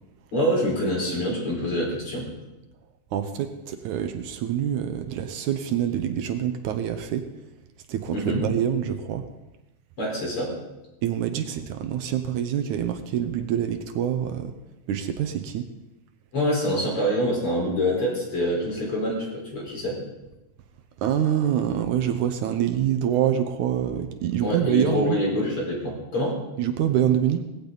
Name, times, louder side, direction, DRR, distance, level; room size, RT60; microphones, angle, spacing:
voice 1, 0.3-2.3 8.1-8.4 10.0-10.5 11.4-11.7 16.3-20.0 24.4-26.4, equal, 45° left, -2 dB, 5.3 m, -26 dB
voice 2, 3.1-7.3 7.9-9.3 11.0-14.5 14.9-15.7 21.0-25.2 26.6-27.4, right 10 dB, 75° right, 8 dB, 2.2 m, -25 dB
18.5 x 16.0 x 4.0 m, 1.0 s
omnidirectional pair, 3.6 m